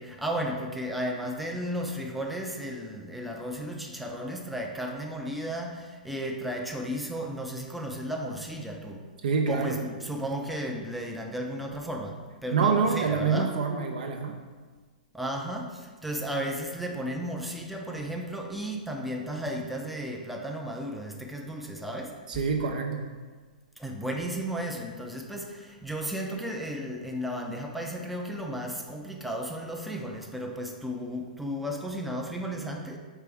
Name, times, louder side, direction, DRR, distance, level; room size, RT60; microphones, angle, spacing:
voice 1, 0.0-9.1 9.5-13.6 15.1-22.2 23.8-33.0, equal, ahead, 1 dB, 0.4 m, -34 dB
voice 2, 9.2-9.8 12.5-14.4 22.3-23.0, right 5 dB, 65° right, 3 dB, 0.5 m, -26 dB
4.5 x 3.3 x 3.4 m, 1.4 s
hypercardioid pair, 115°, 5 cm